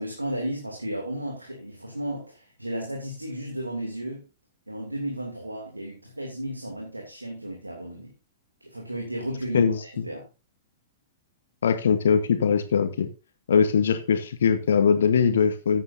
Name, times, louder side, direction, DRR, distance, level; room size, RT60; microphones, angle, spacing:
voice 1, 0.0-4.3 4.7-8.1 8.6-10.3, right 1 dB, 85° right, 1 dB, 2.7 m, -34 dB
voice 2, 11.6-13.1 13.5-15.8, left 6 dB, 60° left, 9 dB, 1.2 m, -21 dB
14.5 x 9.1 x 2.7 m, 0.30 s
figure-of-eight pair, 105°, 0 cm